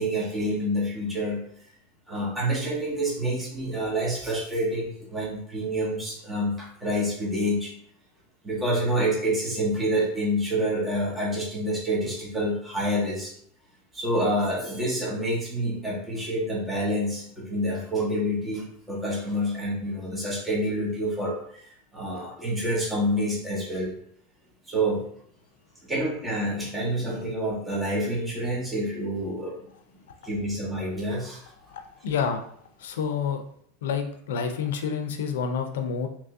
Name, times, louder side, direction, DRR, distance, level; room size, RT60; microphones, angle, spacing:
voice 1, 0.0-1.4 2.1-7.7 8.4-13.3 13.9-21.6 21.9-23.9 24.7-25.0 25.9-29.6 30.2-31.4, equal, 10° right, -4 dB, 0.9 m, -27 dB
voice 2, 31.7-32.4 32.8-33.4 33.8-36.1, left 6 dB, 90° left, 5 dB, 0.5 m, -28 dB
2.9 x 2.6 x 3.5 m, 0.64 s
supercardioid pair, 150°, 0 cm